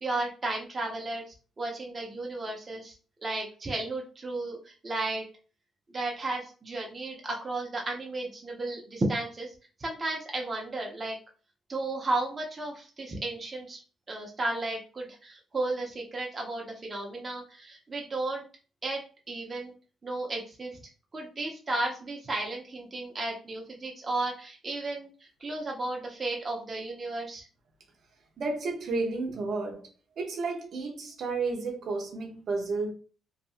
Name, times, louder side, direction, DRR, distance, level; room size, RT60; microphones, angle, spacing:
voice 1, 0.0-2.9 3.2-5.2 5.9-9.5 9.8-11.2 11.7-13.8 14.1-18.4 18.8-19.0 19.3-19.7 20.0-20.8 21.1-27.5, right 2 dB, 30° right, 0.6 m, -34 dB
voice 2, 28.4-29.8 30.2-32.9, right 3 dB, 60° right, 0.8 m, -32 dB
2.7 x 2.5 x 2.4 m
cardioid pair, 90°, 0 cm